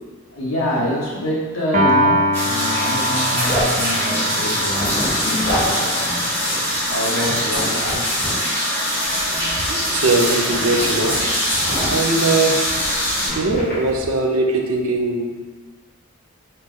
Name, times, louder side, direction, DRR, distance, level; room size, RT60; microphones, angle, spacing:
voice 1, 0.3-6.3 6.9-9.9 13.2-13.7, left 1 dB, 80° left, -5 dB, 0.9 m, -27 dB
Piano, 1.7-8.1, equal, 40° right, 0.5 m, -24 dB
sound 1, 2.3-13.3, equal, 10° left, 0.8 m, -22 dB
Zipper (clothing), 3.4-3.8 4.5-5.1 5.4-5.7 6.0-6.1 6.5-6.9 7.2-8.3 9.0-9.7 9.9-12.1 12.7-13.7, equal, 45° left, 1.2 m, -28 dB
voice 2, 9.7-11.2 11.9-12.6 13.4-15.5, right 2 dB, 85° right, 2 dB, 0.5 m, -20 dB
3.0 x 2.9 x 3.7 m, 1.4 s
head